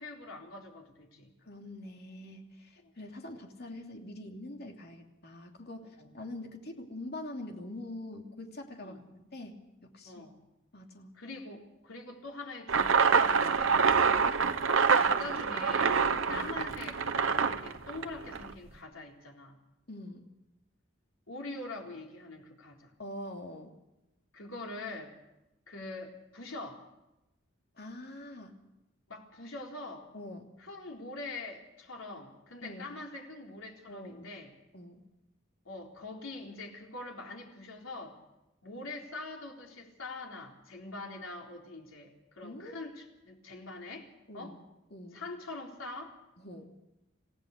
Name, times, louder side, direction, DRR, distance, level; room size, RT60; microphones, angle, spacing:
voice 1, 0.0-1.3 6.0-6.2 8.8-9.0 10.1-10.4 11.1-13.8 14.9-19.6 21.3-22.9 24.3-25.2 25.7-26.8 29.1-30.1 30.6-34.5 35.7-38.2 38.6-44.6 45.1-46.2, left 2 dB, 85° left, 1 dB, 4.0 m, -44 dB
voice 2, 1.4-10.2 10.7-11.1 14.2-14.4 16.3-16.5 19.9-20.3 23.0-23.7 27.8-28.6 30.1-30.5 32.6-32.9 33.9-34.4 34.7-35.0 42.4-42.8 44.3-44.6 44.9-45.2 46.4-46.7, left 1 dB, 50° left, 3 dB, 2.9 m, -44 dB
sound 1, 12.7-18.5, right 5 dB, 80° right, 1.1 m, -26 dB
27.5 x 15.5 x 6.6 m, 0.96 s
head